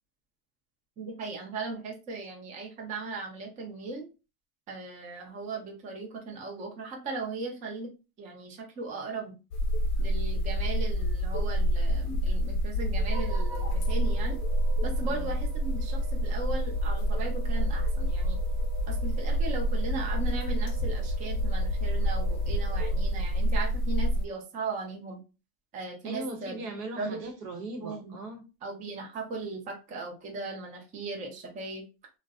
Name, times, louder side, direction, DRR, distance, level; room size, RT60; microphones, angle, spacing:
voice 1, 1.0-4.1 4.7-7.9 8.2-9.4 10.0-14.4 14.8-18.4 18.9-25.2 25.7-26.6 27.0-27.2 27.8-28.2 28.6-31.8, right 3 dB, 20° right, 0.4 m, -38 dB
sound 1, 9.5-24.3, equal, 60° left, 0.5 m, -28 dB
sound 2, 13.0-23.6, right 8 dB, 35° right, 1.0 m, -48 dB
voice 2, 26.0-28.5, right 2 dB, 80° right, 0.9 m, -39 dB
2.5 x 2.1 x 2.4 m
supercardioid pair, 125°, 46 cm